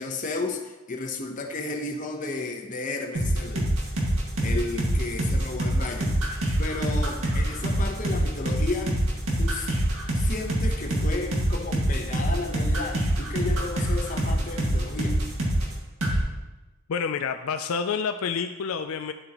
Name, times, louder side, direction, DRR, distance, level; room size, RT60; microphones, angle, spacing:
voice 1, 0.0-3.7 4.4-6.1 6.6-9.1 9.4-9.7 10.1-15.2, left 3 dB, 35° left, 3 dB, 0.9 m, -33 dB
sound 1, 3.1-15.7 16.0-16.2, right 1 dB, 75° right, 1.9 m, -24 dB
voice 2, 16.9-19.1, left 6 dB, 75° left, 7 dB, 0.4 m, -28 dB
10.5 x 7.8 x 3.0 m, 1.1 s
head